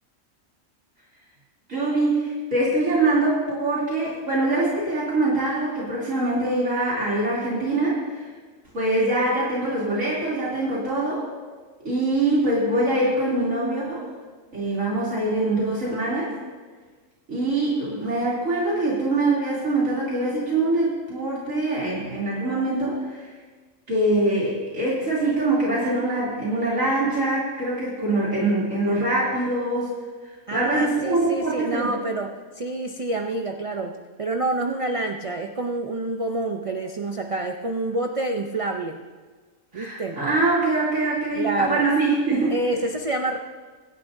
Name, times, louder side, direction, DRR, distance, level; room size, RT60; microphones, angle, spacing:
voice 1, 1.7-8.3 8.7-11.2 11.8-14.0 14.5-16.3 17.3-23.3 23.9-29.9 30.5-31.9 39.7-42.5, right 2 dB, 90° right, -8 dB, 3.4 m, -23 dB
voice 2, 30.5-39.0 39.7-40.2 41.4-41.9 42.5-43.4, right 2 dB, 35° right, 3 dB, 0.5 m, -27 dB
25.0 x 11.0 x 2.7 m, 1.4 s
omnidirectional pair, 1.3 m